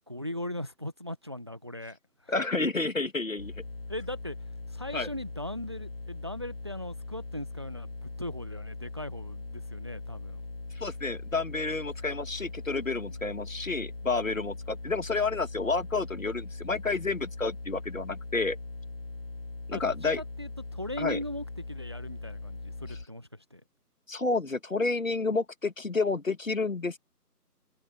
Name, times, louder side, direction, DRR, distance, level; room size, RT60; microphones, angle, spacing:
voice 1, 0.1-2.0 2.2-2.3 3.9-4.4 4.7-10.4 13.1-13.2 19.7-23.6, left 1 dB, 15° right, 1.3 m, -39 dB
voice 2, 2.3-3.5 4.9-5.1 10.8-18.6 19.7-20.2 21.0-21.2 24.1-27.0, left 3 dB, 55° left, 1.9 m, -30 dB
sound 1, 3.4-23.1, left 3 dB, 35° left, 2.4 m, -40 dB
open air
figure-of-eight pair, 165°, 48 cm